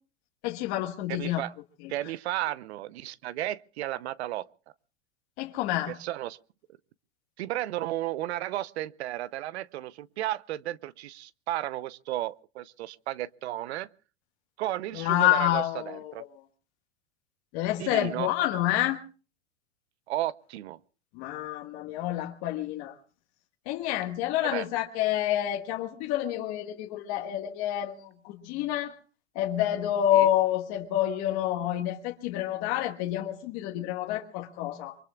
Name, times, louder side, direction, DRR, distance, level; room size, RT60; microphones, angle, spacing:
voice 1, 0.4-1.4 5.4-5.9 14.9-16.1 17.5-19.0 21.1-22.9 23.6-28.9 29.3-35.0, left 13 dB, 45° left, 1.6 m, -28 dB
voice 2, 1.1-1.5 1.9-4.5 5.9-6.4 7.4-13.9 14.6-16.2 17.8-18.3 20.1-20.8 24.4-24.7 30.1-30.3, right 14 dB, 75° right, 0.8 m, -33 dB
26.5 x 23.5 x 2.3 m
supercardioid pair, 135°, 33 cm